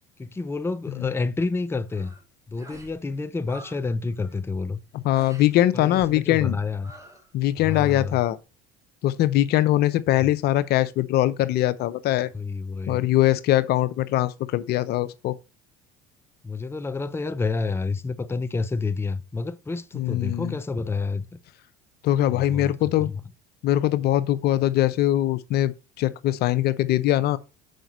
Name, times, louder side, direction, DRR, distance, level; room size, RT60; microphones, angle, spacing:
voice 1, 0.2-2.1 2.5-4.8 5.7-6.9 7.6-8.2 10.2-10.3 12.3-13.1 16.4-21.4 22.3-22.7 23.0-23.2, left 4 dB, 15° left, 0.7 m, -29 dB
sound 1, 1.9-2.2 2.6-3.0 3.2-3.8 4.1-4.4 5.1-5.5 5.9-6.2 6.8-7.3 7.6-8.1, right 1 dB, 15° right, 3.1 m, -47 dB
voice 2, 5.0-6.6 7.3-8.4 9.0-12.3 12.9-15.4 19.9-20.5 22.0-23.1 23.6-27.4, left 14 dB, 60° left, 0.7 m, -22 dB
6.5 x 5.1 x 6.0 m
supercardioid pair, 85°, 18 cm